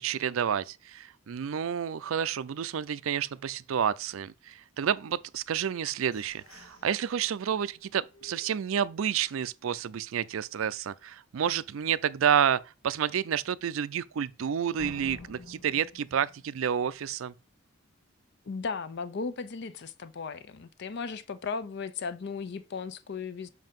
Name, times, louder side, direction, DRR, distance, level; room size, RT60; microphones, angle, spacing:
voice 1, 0.0-17.3, right 8 dB, 75° right, 0.4 m, -30 dB
sound 1, 5.5-9.4 9.8-9.9 10.3-10.7 11.1-11.2 11.7-11.8 14.8-17.4, left 2 dB, 85° left, 1.1 m, -52 dB
voice 2, 18.5-23.5, left 5 dB, 55° left, 0.5 m, -36 dB
7.6 x 2.7 x 5.2 m
head